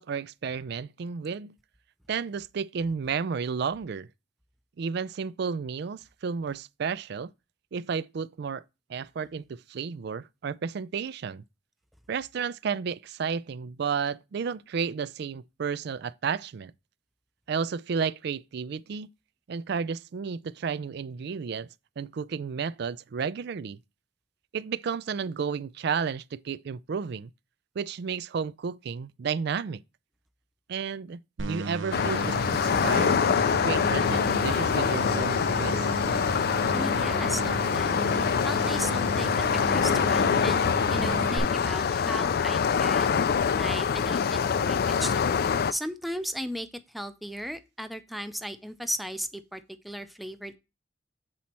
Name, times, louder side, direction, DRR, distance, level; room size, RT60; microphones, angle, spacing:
voice 1, 0.0-1.6 2.1-4.1 4.8-7.3 7.7-8.6 8.9-11.4 12.1-16.7 17.5-19.1 19.5-21.7 22.0-23.8 24.5-27.3 27.8-29.8 30.7-35.9, right 6 dB, 60° right, 0.4 m, -32 dB
sound 1, 31.4-41.4, right 3 dB, 80° right, 0.8 m, -34 dB
sound 2, 31.9-45.7, left 6 dB, 55° left, 0.4 m, -25 dB
voice 2, 36.7-38.0 38.4-43.1 43.5-45.4 45.7-46.7 46.9-50.6, equal, ahead, 0.5 m, -36 dB
7.7 x 4.2 x 4.3 m
head